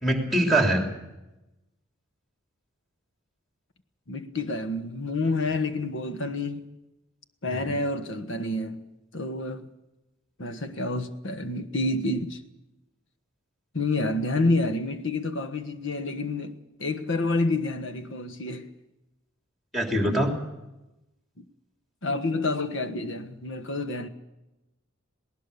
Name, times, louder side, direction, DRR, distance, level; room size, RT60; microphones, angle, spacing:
voice 1, 0.0-0.8 7.4-7.6 19.7-20.3, right 1 dB, ahead, 3.2 m, -23 dB
voice 2, 4.1-6.7 7.4-8.9 9.1-9.7 10.4-12.4 13.7-18.7 21.4-21.5 22.0-24.1, left 2 dB, 65° left, 1.4 m, -28 dB
20.0 x 18.5 x 7.0 m
head